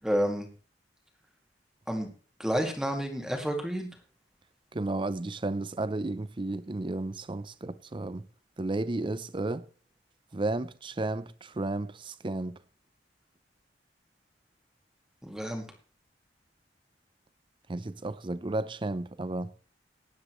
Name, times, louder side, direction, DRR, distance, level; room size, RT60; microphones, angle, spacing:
voice 1, 0.0-0.5 1.9-2.1 2.4-3.9 15.2-15.6, equal, 5° right, 2.0 m, -30 dB
voice 2, 4.7-8.3 8.6-9.7 10.3-12.6 17.7-19.5, right 2 dB, 30° right, 0.6 m, -33 dB
16.5 x 10.5 x 3.1 m
head